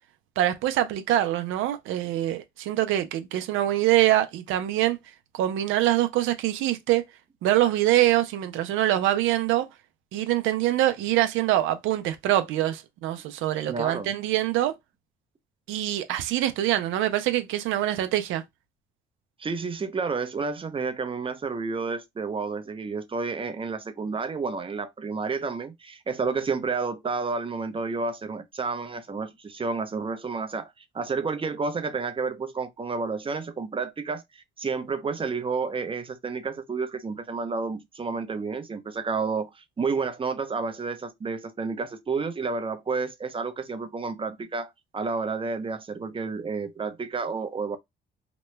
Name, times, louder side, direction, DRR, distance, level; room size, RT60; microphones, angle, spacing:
voice 1, 0.4-5.0 5.3-7.0 7.4-9.7 10.1-14.7 15.7-18.4, right 13 dB, 90° right, 0.5 m, -24 dB
voice 2, 13.7-14.1 19.4-47.8, right 4 dB, 25° right, 0.6 m, -30 dB
2.9 x 2.2 x 3.1 m
cardioid pair, 90°, 20 cm